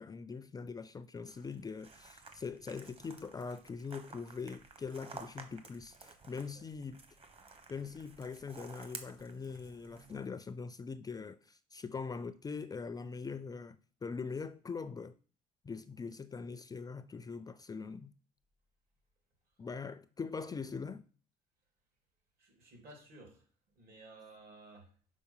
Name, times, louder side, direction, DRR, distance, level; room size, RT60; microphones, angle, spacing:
voice 1, 0.0-7.0 7.7-15.1 15.6-18.1 19.6-21.0, left 5 dB, 20° left, 0.4 m, -42 dB
sound 1, 1.3-10.3, right 4 dB, 35° right, 1.2 m, -53 dB
voice 2, 22.4-23.5 23.7-24.9, right 2 dB, 60° right, 2.9 m, -55 dB
5.8 x 4.7 x 5.6 m
cardioid pair, 110°, 17 cm